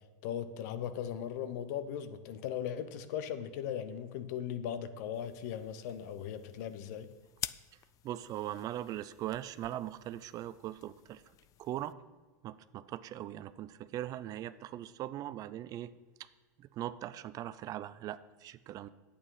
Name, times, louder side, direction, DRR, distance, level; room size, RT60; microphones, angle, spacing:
voice 1, 0.2-7.1, left 9 dB, 65° left, 12 dB, 0.8 m, -38 dB
sound 1, 5.1-11.9, left 13 dB, 35° left, 0.3 m, -49 dB
voice 2, 7.7-11.2 11.6-12.0 12.4-15.9 16.6-18.9, right 12 dB, 40° right, 15 dB, 0.4 m, -40 dB
8.8 x 8.3 x 5.6 m, 1.3 s
supercardioid pair, 115°, 10 cm